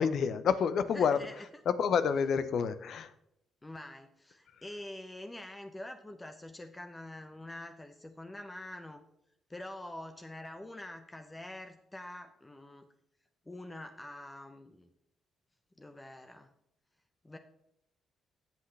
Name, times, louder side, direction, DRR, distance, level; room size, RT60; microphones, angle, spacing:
voice 1, 0.0-1.2 1.7-3.1, left 6 dB, 65° left, 12 dB, 0.7 m, -28 dB
voice 2, 0.9-1.5 3.6-9.0 9.5-12.9 13.5-14.9 15.8-16.5 17.2-17.4, left 1 dB, 15° left, 6 dB, 0.8 m, -45 dB
17.5 x 6.0 x 3.3 m, 0.78 s
cardioid pair, 90°, 0 cm